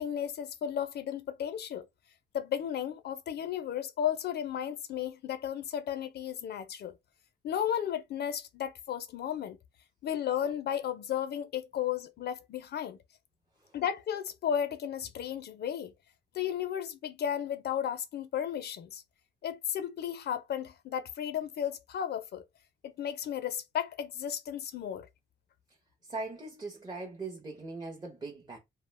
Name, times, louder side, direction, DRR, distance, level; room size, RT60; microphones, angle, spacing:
voice 1, 0.0-1.9 2.3-7.0 7.4-9.6 10.0-13.0 13.7-15.9 16.3-19.0 19.4-22.4 22.8-25.1, left 9 dB, 55° left, 0.4 m, -34 dB
voice 2, 26.0-28.6, right 3 dB, 20° right, 0.6 m, -40 dB
2.4 x 2.1 x 3.2 m
cardioid pair, 90°, 20 cm